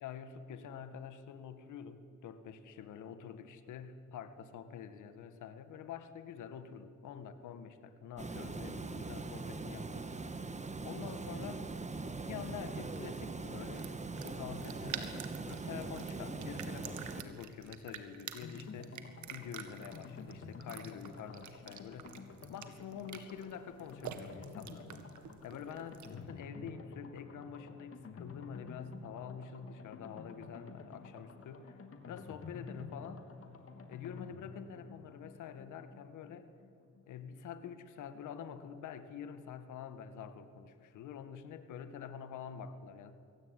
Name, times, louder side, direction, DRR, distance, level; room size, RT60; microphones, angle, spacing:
voice 1, 0.0-10.1 10.8-11.7 12.3-22.2 22.5-25.0 25.4-33.3 33.9-36.5 37.1-43.1, left 7 dB, 80° left, 10 dB, 1.9 m, -47 dB
Water, 8.2-17.2, right 3 dB, 25° right, 1.7 m, -41 dB
sound 1, 13.7-26.3, right 9 dB, 75° right, 2.1 m, -50 dB
sound 2, 18.4-37.0 37.3-37.4 37.7-37.8, left 4 dB, 50° left, 3.1 m, -51 dB
23.0 x 17.5 x 9.7 m, 2.6 s
cardioid pair, 90°, 30 cm